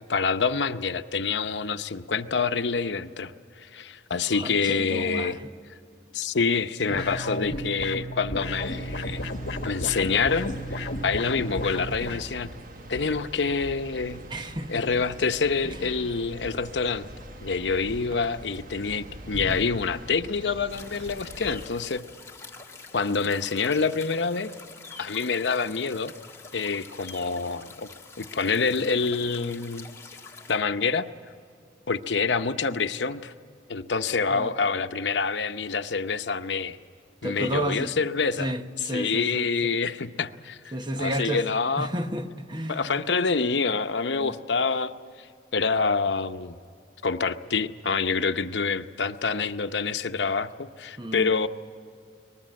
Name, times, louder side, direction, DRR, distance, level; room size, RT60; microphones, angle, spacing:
voice 1, 0.0-3.3 3.6-5.4 6.1-9.2 9.6-12.5 12.9-14.2 14.7-17.1 17.4-22.0 22.9-24.5 25.0-26.1 26.5-27.9 28.2-29.9 30.5-31.1 31.9-33.3 33.7-36.8 37.2-38.5 38.8-41.9 42.7-44.9 45.2-45.3 45.5-46.5 47.0-51.5, left 4 dB, 90° left, 0.8 m, -27 dB
voice 2, 4.3-5.5 6.9-7.1 14.3-15.0 15.8-16.1 34.3-34.5 37.2-37.9 38.4-39.8 40.7-41.4 41.8-43.0 44.1-44.4 51.0-51.3, right 1 dB, 25° right, 1.0 m, -32 dB
sound 1, 6.9-12.2, left 1 dB, 70° left, 1.3 m, -33 dB
sound 2, 8.6-21.7, right 1 dB, 50° right, 1.2 m, -42 dB
sound 3, 20.7-30.6, left 4 dB, 15° left, 1.6 m, -45 dB
23.5 x 20.0 x 7.6 m
head